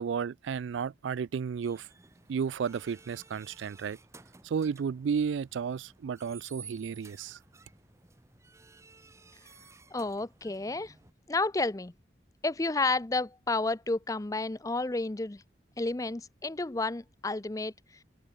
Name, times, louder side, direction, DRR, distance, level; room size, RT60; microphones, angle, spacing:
voice 1, 0.0-1.9 2.3-4.0 4.4-7.4, right 6 dB, 80° right, 0.3 m, -33 dB
sound 1, 1.6-11.1, right 4 dB, 15° right, 0.9 m, -54 dB
voice 2, 9.9-10.9 11.3-11.9 12.4-15.4 15.8-17.7, left 3 dB, 20° left, 0.5 m, -31 dB
head